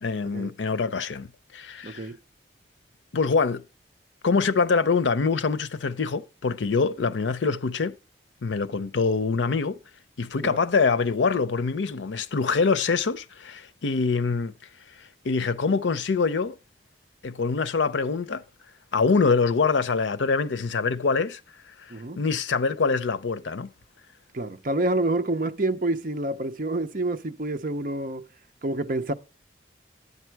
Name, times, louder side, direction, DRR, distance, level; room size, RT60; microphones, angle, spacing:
voice 1, 0.0-2.1 3.1-3.6 4.2-8.0 8.4-9.8 10.2-14.5 15.0-16.6 17.2-18.4 18.9-21.4 21.8-23.7, left 4 dB, 90° left, 0.6 m, -24 dB
voice 2, 1.8-2.2 7.0-7.1 10.4-10.6 21.9-22.2 24.3-28.3 28.6-29.1, right 2 dB, 45° right, 0.7 m, -28 dB
11.0 x 8.5 x 4.6 m
head